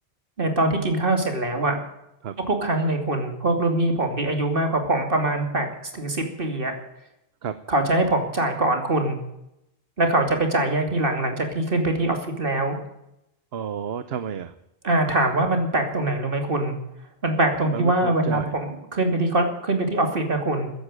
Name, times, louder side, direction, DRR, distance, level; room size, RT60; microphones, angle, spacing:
voice 1, 0.4-1.8 2.5-5.7 5.9-6.7 7.7-9.2 10.0-12.8 14.8-16.8 17.2-20.7, right 2 dB, 60° right, 5 dB, 3.0 m, -23 dB
voice 2, 13.5-14.5 17.7-18.5, right 8 dB, 75° right, 12 dB, 1.1 m, -31 dB
14.5 x 10.5 x 9.0 m, 0.84 s
omnidirectional pair, 1.0 m